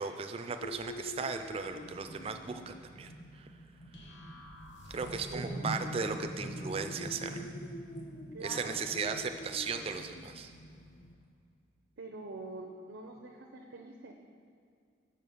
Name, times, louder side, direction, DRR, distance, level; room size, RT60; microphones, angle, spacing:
voice 1, 0.0-3.5 4.9-7.5 8.4-10.5, right 5 dB, 30° right, 7 dB, 0.3 m, -37 dB
sound 1, 0.6-11.1, left 1 dB, 50° left, 0.4 m, -48 dB
sound 2, 1.2-11.3, right 1 dB, 30° left, 0.8 m, -45 dB
sound 3, 3.9-5.5, left 1 dB, 65° left, 0.8 m, -52 dB
voice 2, 5.0-5.9 8.3-8.8 12.0-14.1, right 2 dB, 85° right, 2 dB, 0.6 m, -45 dB
6.4 x 5.8 x 5.4 m, 2.2 s
head